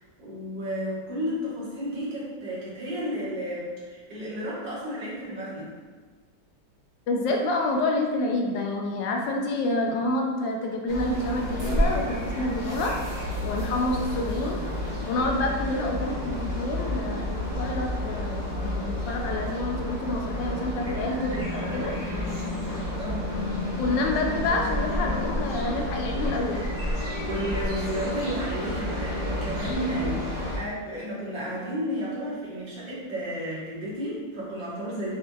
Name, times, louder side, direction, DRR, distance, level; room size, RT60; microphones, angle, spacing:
voice 1, 0.0-5.7 20.8-21.0 21.3-21.9 22.3-22.4 22.6-23.3 27.0-35.2, equal, 75° right, -8 dB, 2.0 m, -33 dB
voice 2, 7.1-13.0 13.4-14.6 15.1-21.9 23.8-26.7, left 2 dB, 75° left, 1 dB, 1.2 m, -28 dB
sound 1, 10.9-30.6, left 1 dB, 35° right, 0.8 m, -30 dB
6.3 x 2.8 x 2.3 m, 1.4 s
omnidirectional pair, 2.0 m